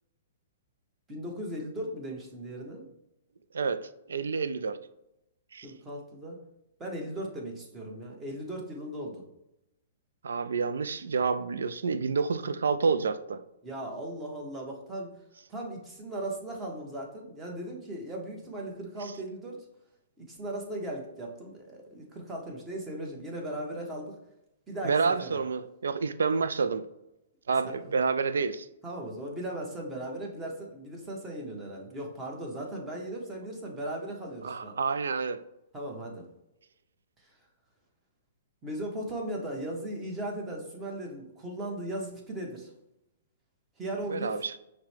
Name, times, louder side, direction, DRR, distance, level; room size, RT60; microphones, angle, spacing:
voice 1, 1.1-2.9 5.6-6.4 6.8-9.2 13.6-15.1 15.5-19.7 20.2-24.2 24.7-25.4 27.8-28.0 28.8-34.8 35.7-36.3 37.2-37.3 38.6-42.7 43.8-44.4, right 1 dB, 15° right, -1 dB, 1.1 m, -37 dB
voice 2, 3.5-4.8 5.5-5.7 10.2-13.4 24.8-26.8 27.5-28.7 34.4-35.4 44.1-44.6, right 5 dB, 85° right, 13 dB, 0.3 m, -29 dB
5.8 x 2.1 x 3.3 m, 0.86 s
hypercardioid pair, 140°, 0 cm